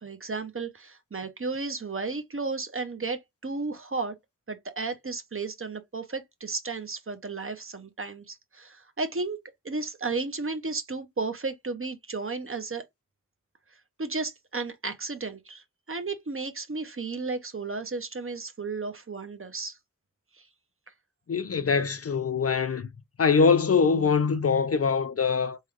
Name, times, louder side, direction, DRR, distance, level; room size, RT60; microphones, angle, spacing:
voice 1, 0.0-4.1 4.5-9.4 9.6-12.8 14.0-19.8 20.4-20.5, right 3 dB, 40° right, 0.8 m, -33 dB
voice 2, 21.3-22.9 23.2-25.6, left 5 dB, 50° left, 0.4 m, -23 dB
3.7 x 2.3 x 3.1 m
wide cardioid pair, 60°, 32 cm